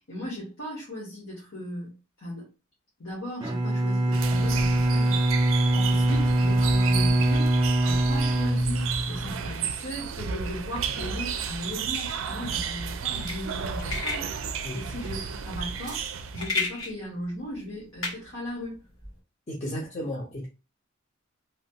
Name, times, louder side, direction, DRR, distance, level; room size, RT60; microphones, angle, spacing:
voice 1, 0.1-1.9 2.2-2.5 3.0-7.5 7.8-14.3 14.7-15.2 15.4-18.8 19.6-19.8, equal, 70° left, 1.2 m, -37 dB
Bowed string instrument, 3.4-9.4, right 1 dB, 20° right, 0.4 m, -23 dB
sound 1, 4.1-16.6, right 6 dB, 80° right, 0.4 m, -33 dB
sound 2, 12.0-19.1, left 4 dB, 85° left, 1.3 m, -35 dB
voice 2, 19.5-20.5, equal, 35° left, 0.6 m, -33 dB
3.1 x 2.3 x 2.8 m
head